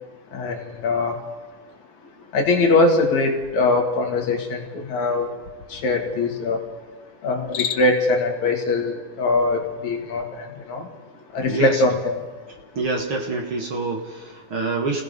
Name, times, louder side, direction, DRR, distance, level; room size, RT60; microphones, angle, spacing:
voice 1, 0.3-1.2 2.3-5.3 5.7-6.6 7.2-10.8 11.3-12.2, left 3 dB, 65° left, 2 dB, 3.2 m, -22 dB
Cricket, 7.3-8.1, left 8 dB, 85° left, 1.1 m, -30 dB
voice 2, 11.4-11.8 12.8-15.0, right 3 dB, 45° right, 1 dB, 2.2 m, -26 dB
29.5 x 17.0 x 5.5 m, 1.4 s
omnidirectional pair, 3.6 m